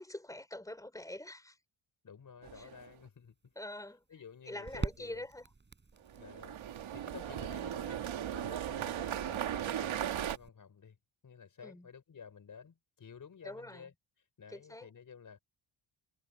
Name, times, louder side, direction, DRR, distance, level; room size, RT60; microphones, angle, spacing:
voice 1, 0.0-1.6 2.6-2.7 3.6-4.0 4.5-5.5 6.3-6.4 11.6-11.9 13.4-13.9 14.5-14.9, left 1 dB, 5° left, 4.3 m, -45 dB
voice 2, 2.0-3.5 4.1-5.2 6.1-8.0 8.3-11.0 11.2-13.9 14.4-15.4, left 6 dB, 40° left, 5.1 m, -53 dB
sound 1, 2.4-2.9 6.1-10.4, right 10 dB, 75° right, 1.7 m, -37 dB
sound 2, 2.6-10.5, right 4 dB, 20° right, 5.3 m, -47 dB
wide cardioid pair, 175°, 48 cm